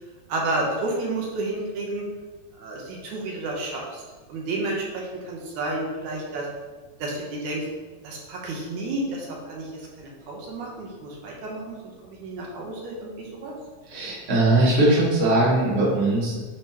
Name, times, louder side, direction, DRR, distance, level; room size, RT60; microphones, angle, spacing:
voice 1, 0.3-2.0 2.6-4.0 4.3-6.5 7.0-7.6 8.0-9.7 10.0-11.8 12.2-13.5, right 2 dB, 75° right, -2 dB, 2.3 m, -31 dB
voice 2, 13.9-16.4, right 2 dB, 30° right, -7 dB, 1.3 m, -20 dB
9.5 x 3.4 x 2.9 m, 1.3 s
omnidirectional pair, 3.5 m